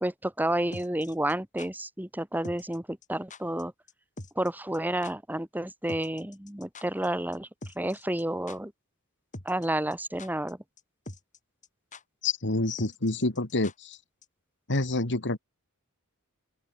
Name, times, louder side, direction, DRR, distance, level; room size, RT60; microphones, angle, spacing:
voice 1, 0.0-3.7 4.4-7.5 7.8-8.7 9.4-10.6, right 1 dB, 10° right, 2.3 m, -30 dB
sound 1, 0.7-1.7 2.4-2.8 3.0-3.1 3.3-3.6 3.9-4.5 4.7-4.8 5.0-5.1 5.9-7.1 7.3-7.4 7.6-8.2 8.5-8.6 9.3-9.7 9.9-10.5 10.8-10.9 11.1-11.4 11.6-11.7 11.9-12.0 12.8-14.0 14.2-14.3, left 2 dB, 35° left, 3.9 m, -43 dB
voice 2, 12.2-14.0 14.7-15.4, left 2 dB, 55° left, 2.3 m, -28 dB
open air
head